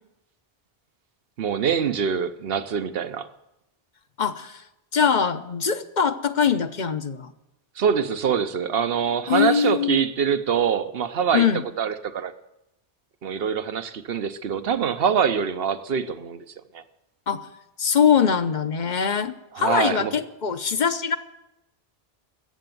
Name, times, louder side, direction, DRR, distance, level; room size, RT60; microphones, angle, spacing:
voice 1, 1.4-3.3 7.8-11.5 11.8-12.3 13.2-16.4 16.7-16.8 19.5-20.1, right 7 dB, 70° right, 12 dB, 1.1 m, -24 dB
voice 2, 4.2-4.6 4.9-7.3 9.3-10.0 11.3-11.6 17.3-17.5 17.8-21.2, left 7 dB, 50° left, 11 dB, 0.9 m, -22 dB
15.0 x 7.9 x 9.3 m, 0.90 s
omnidirectional pair, 1.0 m